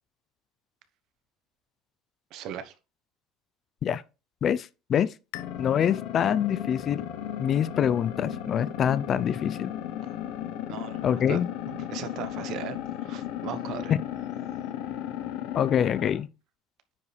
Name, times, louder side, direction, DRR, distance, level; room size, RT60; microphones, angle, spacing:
voice 1, 2.3-2.7 10.7-11.4 11.7-13.9, right 9 dB, 55° right, 1.1 m, -38 dB
voice 2, 4.4-5.1 5.6-7.1 7.4-9.7 11.0-11.5 15.5-16.3, left 9 dB, 35° left, 0.4 m, -25 dB
sound 1, 5.3-16.2, left 11 dB, 70° left, 0.9 m, -35 dB
9.4 x 5.3 x 3.3 m
cardioid pair, 150°, 0 cm